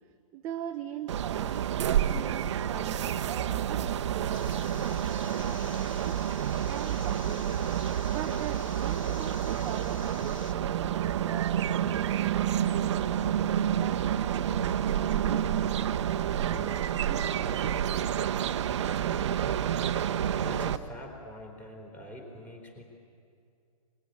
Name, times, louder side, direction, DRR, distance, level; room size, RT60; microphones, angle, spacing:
voice 1, 0.3-7.6 8.1-13.2 13.7-17.8, right 10 dB, 15° right, 6 dB, 0.6 m, -42 dB
sound 1, 1.1-20.8, right 10 dB, 50° right, 0.9 m, -29 dB
sound 2, 4.3-10.5, left 7 dB, 60° left, 1.7 m, -49 dB
voice 2, 20.4-22.8, equal, 10° left, 2 dB, 3.8 m, -44 dB
22.0 x 21.5 x 9.4 m, 2.4 s
hypercardioid pair, 160°, 19 cm